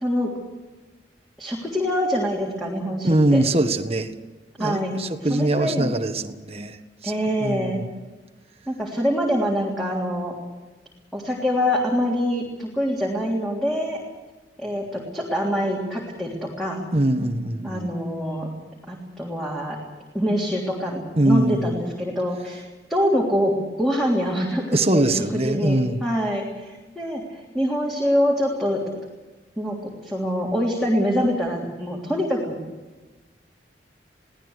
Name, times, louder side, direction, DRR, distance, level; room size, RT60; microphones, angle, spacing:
voice 1, 1.4-3.4 4.6-5.0 5.3-5.9 7.0-7.8 8.7-10.3 11.1-14.0 14.6-16.8 17.6-18.5 18.9-19.8 20.1-22.6 22.9-23.5 23.8-28.8 29.6-32.6, equal, ahead, -3 dB, 3.3 m, -25 dB
voice 2, 3.0-4.1 4.6-7.1 7.4-7.9 16.9-17.9 21.1-21.8 24.7-26.0, right 1 dB, 35° right, 7 dB, 1.5 m, -22 dB
23.5 x 17.5 x 8.2 m, 1.2 s
head